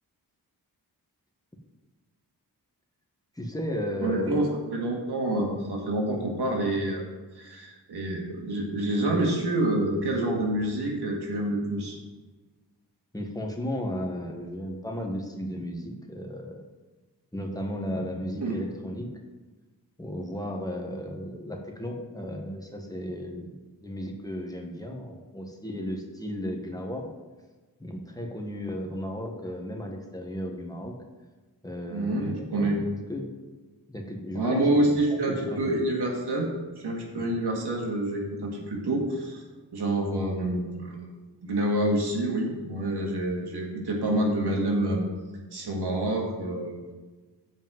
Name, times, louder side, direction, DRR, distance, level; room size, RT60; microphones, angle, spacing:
voice 1, 3.4-4.5 13.1-16.6 17.3-19.1 20.0-23.5 23.8-27.1 27.8-30.9 31.6-32.8 33.1-33.2 33.9-35.0 35.5-35.9 37.2-37.3, equal, 10° left, 0 dB, 1.4 m, -34 dB
voice 2, 4.0-7.0 7.3-12.0 18.4-18.5 31.9-32.8 34.3-36.5 36.8-39.4 39.7-40.9 41.4-45.0 45.5-46.9, right 1 dB, 90° right, 0 dB, 1.9 m, -27 dB
7.6 x 5.2 x 7.5 m, 1.3 s
wide cardioid pair, 85°, 39 cm